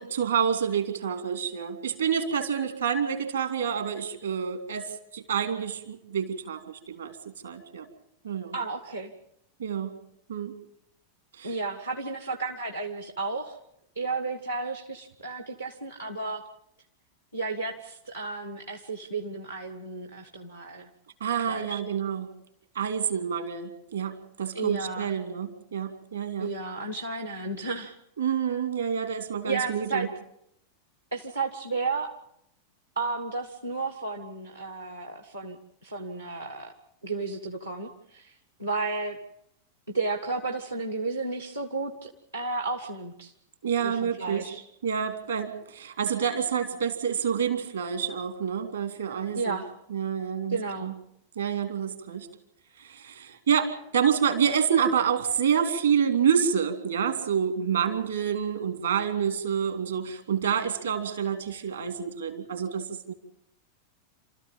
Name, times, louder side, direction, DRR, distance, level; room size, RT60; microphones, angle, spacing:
voice 1, 0.0-7.2 7.4-7.9 8.2-8.5 9.6-10.0 10.3-10.5 11.4-11.6 21.2-22.3 22.7-26.5 28.2-30.1 43.6-44.5 44.8-49.6 49.9-50.9 51.4-52.3 52.8-63.1, right 7 dB, 70° right, 8 dB, 2.6 m, -28 dB
voice 2, 8.5-9.1 11.4-13.6 13.9-16.4 17.3-20.9 21.5-21.8 24.5-25.1 26.4-27.9 29.4-30.1 31.1-32.1 32.9-36.7 37.0-38.3 38.6-39.2 39.9-43.3 43.8-44.6 49.3-49.7 50.5-50.9, right 3 dB, 85° right, 3 dB, 1.6 m, -33 dB
28.5 x 14.0 x 7.4 m, 0.78 s
figure-of-eight pair, 90°, 0 cm